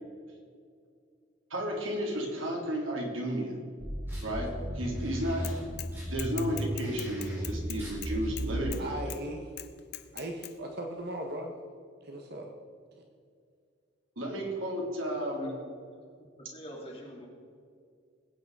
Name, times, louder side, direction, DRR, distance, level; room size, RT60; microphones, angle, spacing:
voice 1, 1.5-3.5 4.2-5.5 6.1-9.0 14.1-15.5, equal, 85° right, -1 dB, 3.5 m, -33 dB
sound 1, 3.8-8.8, equal, 10° right, 4.2 m, -35 dB
Bicycle / Mechanisms, 5.4-5.9 6.2-8.8 9.1-9.2 9.6-10.5, left 15 dB, 55° left, 0.8 m, -41 dB
voice 2, 8.8-9.5 10.1-11.5 12.0-12.5, right 1 dB, 55° right, 3 dB, 1.4 m, -38 dB
voice 3, 16.3-17.3, equal, 30° left, -2 dB, 3.2 m, -44 dB
20.5 x 9.0 x 4.9 m, 2.2 s
head